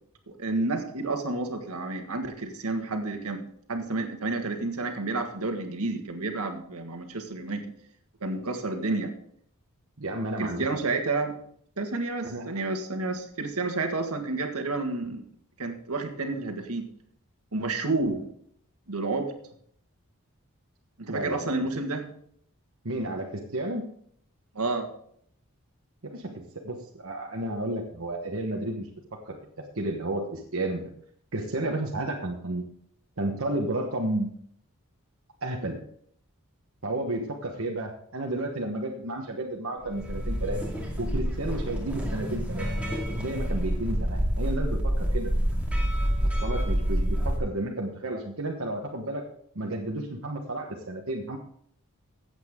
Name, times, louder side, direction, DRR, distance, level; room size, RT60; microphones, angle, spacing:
voice 1, 0.3-3.4 3.7-7.6 8.2-9.1 10.4-11.3 11.8-15.2 15.6-16.8 17.5-18.2 18.9-19.3 21.0-22.0 24.5-24.9, right 3 dB, 80° right, 5 dB, 1.7 m, -30 dB
voice 2, 10.0-10.7 12.2-12.5 21.1-21.5 22.8-23.8 26.0-28.9 29.2-30.9 31.3-32.6 33.2-34.3 35.4-35.8 36.8-40.6 41.0-42.7 43.1-45.3 46.4-49.3 49.5-51.4, right 1 dB, 65° right, 0 dB, 1.2 m, -32 dB
sound 1, 39.9-47.4, equal, 5° right, 2.3 m, -27 dB
14.5 x 8.2 x 3.7 m, 0.65 s
head